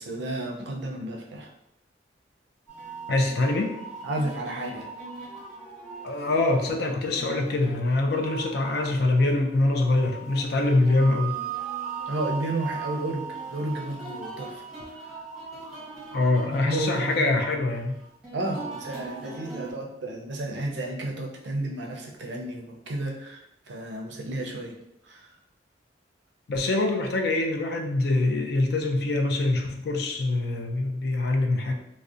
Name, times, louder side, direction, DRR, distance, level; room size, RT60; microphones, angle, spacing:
voice 1, 0.0-1.5 4.0-4.9 12.1-15.2 16.5-17.3 18.3-24.7 25.0-25.3, right 1 dB, 70° right, 1 dB, 0.4 m, -32 dB
sound 1, 2.7-19.7, right 5 dB, 5° right, 0.8 m, -39 dB
voice 2, 3.1-3.7 6.0-11.3 16.1-18.0 26.5-31.7, left 2 dB, 60° left, 3 dB, 0.4 m, -24 dB
2.6 x 2.0 x 2.4 m, 0.81 s
head